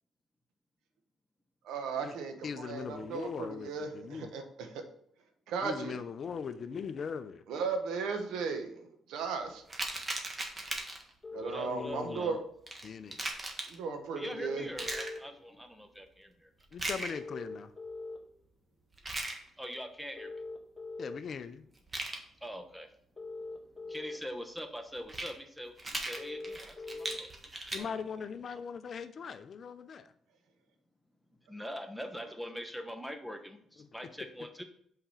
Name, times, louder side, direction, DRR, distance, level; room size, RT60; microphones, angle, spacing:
voice 1, 1.6-4.8 5.5-6.0 7.5-9.6 11.3-12.4 13.7-14.7, right 5 dB, 85° right, 6 dB, 1.2 m, -36 dB
voice 2, 2.4-4.3 5.6-7.4 11.3-12.4 12.8-13.2 16.7-17.7 21.0-21.6 27.7-30.1 33.8-33.9, left 6 dB, 50° left, 12 dB, 0.6 m, -40 dB
sound 1, 9.7-11.1 12.7-13.7 14.8-15.2 16.7-17.2 18.9-19.4 21.8-22.2 25.0-25.3 25.8-27.8, right 2 dB, 25° right, 1.4 m, -37 dB
sound 2, 11.2-12.2 14.2-15.2 17.2-18.2 20.2-21.2 23.2-24.2 26.2-27.2, left 3 dB, 20° left, 1.7 m, -42 dB
voice 3, 11.4-12.4 14.2-16.5 19.6-20.3 22.4-22.9 23.9-27.4 27.8-27.9 31.5-34.6, equal, ahead, 6 dB, 1.1 m, -43 dB
5.7 x 5.0 x 5.6 m, 0.67 s
cardioid pair, 90°, 0 cm